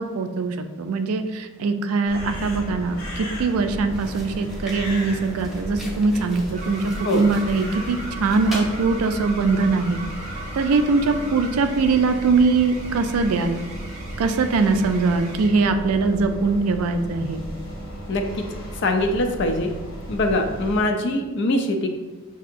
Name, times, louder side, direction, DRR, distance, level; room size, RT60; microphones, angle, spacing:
voice 1, 0.0-10.0 10.5-13.6 14.2-17.4, right 4 dB, 85° right, 8 dB, 0.4 m, -22 dB
sound 1, 2.0-20.8, equal, 80° left, 1.4 m, -35 dB
sound 2, 3.2-3.4 3.8-8.8, equal, ahead, 0.6 m, -41 dB
sound 3, 6.5-15.6, right 2 dB, 35° right, 0.7 m, -39 dB
voice 2, 18.1-18.5 18.7-19.7 20.1-21.9, left 1 dB, 55° left, 5 dB, 0.4 m, -23 dB
5.9 x 2.7 x 2.5 m, 1.2 s
head